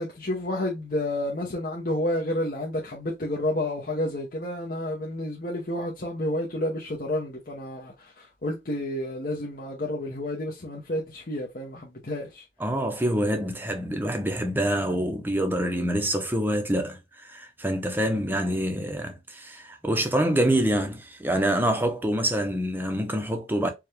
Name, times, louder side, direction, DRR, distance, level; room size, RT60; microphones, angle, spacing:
voice 1, 0.0-12.4, left 1 dB, 50° left, 0.8 m, -30 dB
voice 2, 12.6-23.7, right 1 dB, 10° right, 0.6 m, -26 dB
4.8 x 2.3 x 3.4 m
head